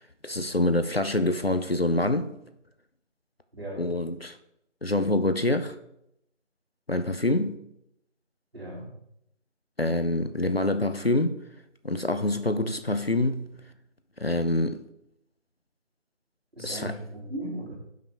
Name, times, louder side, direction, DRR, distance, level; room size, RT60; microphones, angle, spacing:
voice 1, 0.2-2.3 3.8-4.4 4.8-5.8 6.9-7.6 9.8-11.4 11.8-13.5 14.2-14.8 16.6-16.9, left 1 dB, 55° left, 9 dB, 0.6 m, -26 dB
voice 2, 3.5-3.9 8.5-8.9 16.5-17.7, right 1 dB, 55° right, -2 dB, 3.1 m, -37 dB
9.7 x 5.7 x 3.5 m, 0.79 s
figure-of-eight pair, 175°, 36 cm